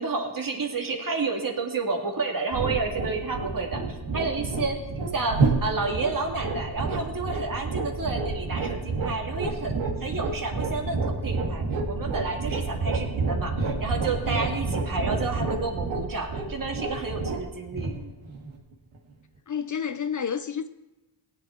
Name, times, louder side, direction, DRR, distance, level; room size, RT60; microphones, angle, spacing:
voice 1, 0.0-4.9 5.1-18.0, right 3 dB, 45° right, 2.0 m, -30 dB
sound 1, 2.5-19.0, right 3 dB, 80° right, 1.9 m, -29 dB
voice 2, 19.5-20.7, left 7 dB, 40° left, 0.5 m, -29 dB
17.5 x 8.1 x 4.5 m
cardioid pair, 70°, 46 cm